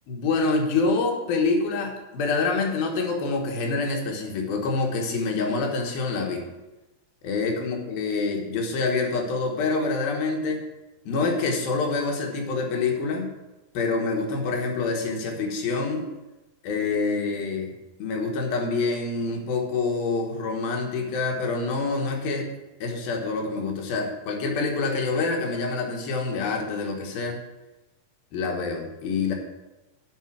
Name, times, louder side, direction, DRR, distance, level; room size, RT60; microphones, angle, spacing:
voice 1, 0.1-6.4 7.2-10.6 11.1-13.4 13.7-16.1 16.6-17.7 18.0-22.5 22.8-27.4 28.3-29.3, left 3 dB, 80° left, 2 dB, 3.2 m, -26 dB
9.2 x 5.5 x 6.2 m, 1.0 s
omnidirectional pair, 4.2 m